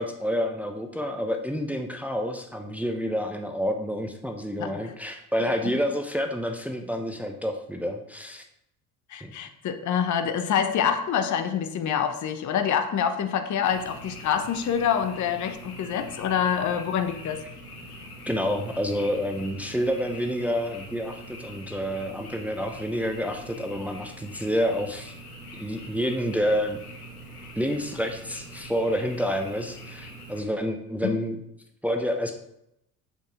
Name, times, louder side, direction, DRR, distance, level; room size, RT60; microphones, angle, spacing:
voice 1, 0.0-8.4 9.2-9.3 18.3-25.1 25.5-26.8 27.6-31.4 31.8-32.3, equal, 5° right, 4 dB, 1.0 m, -28 dB
voice 2, 9.1-17.4 31.0-31.1, left 8 dB, 40° left, 9 dB, 1.0 m, -26 dB
Frog, 13.6-30.4, equal, 90° left, 1.5 m, -43 dB
7.2 x 5.7 x 4.8 m, 0.80 s
hypercardioid pair, 60°, 44 cm